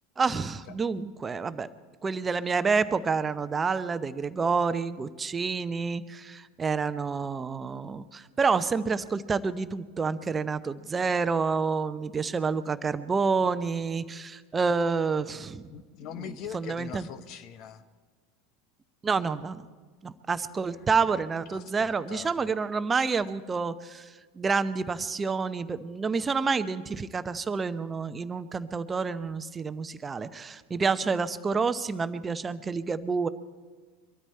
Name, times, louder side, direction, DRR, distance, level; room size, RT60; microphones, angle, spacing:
voice 1, 0.2-1.7 2.0-15.7 16.1-17.1 19.0-19.7 20.0-33.3, right 5 dB, 20° right, 12 dB, 0.8 m, -28 dB
voice 2, 15.7-17.8 20.7-20.8 21.5-22.5, left 9 dB, 50° left, 12 dB, 1.0 m, -42 dB
23.0 x 13.0 x 4.4 m, 1.5 s
figure-of-eight pair, 80°, 0 cm